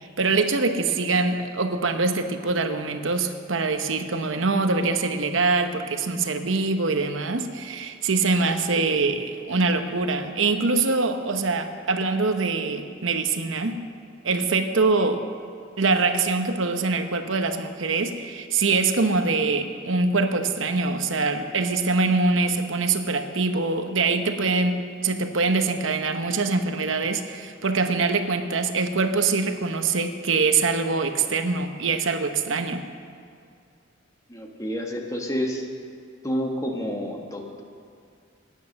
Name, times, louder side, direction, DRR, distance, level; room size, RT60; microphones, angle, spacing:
voice 1, 0.2-13.8 14.2-15.2 15.8-32.8, right 3 dB, 85° right, 7 dB, 1.0 m, -24 dB
voice 2, 34.3-35.7 36.2-37.6, equal, 15° left, 1 dB, 1.4 m, -29 dB
16.5 x 9.4 x 6.5 m, 2.3 s
head